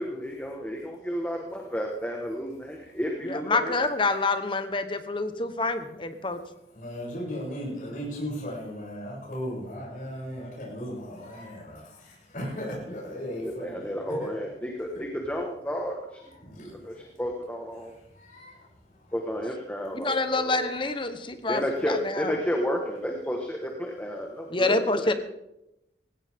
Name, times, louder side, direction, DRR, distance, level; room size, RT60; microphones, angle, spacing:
voice 1, 0.0-3.8 13.4-16.2 16.8-18.0 19.1-20.7 21.5-25.1, equal, 10° left, 1 dB, 1.5 m, -32 dB
voice 2, 3.2-6.4 19.9-22.3 24.5-25.1, left 3 dB, 30° left, 9 dB, 1.1 m, -27 dB
voice 3, 6.7-14.3 16.3-17.1 18.1-18.6 18.9-19.1 20.5-20.9, equal, 50° left, -5 dB, 7.5 m, -37 dB
18.5 x 16.5 x 3.7 m, 0.86 s
head